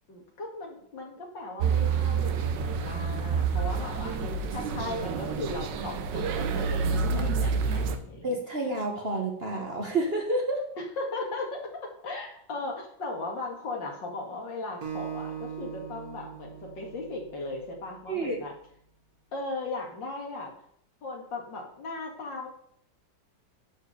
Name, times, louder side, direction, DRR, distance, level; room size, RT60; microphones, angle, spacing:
voice 1, 0.1-8.3 10.8-18.5 19.3-20.5 21.0-22.5, left 2 dB, 75° left, 0 dB, 2.8 m, -37 dB
sound 1, 1.6-8.0, right 5 dB, 70° right, 1.5 m, -28 dB
voice 2, 8.2-10.6 18.1-18.4, right 2 dB, 35° right, 1 dB, 1.5 m, -29 dB
Acoustic guitar, 14.8-18.1, right 8 dB, 55° right, 2.0 m, -40 dB
10.5 x 4.7 x 6.8 m, 0.67 s
omnidirectional pair, 2.0 m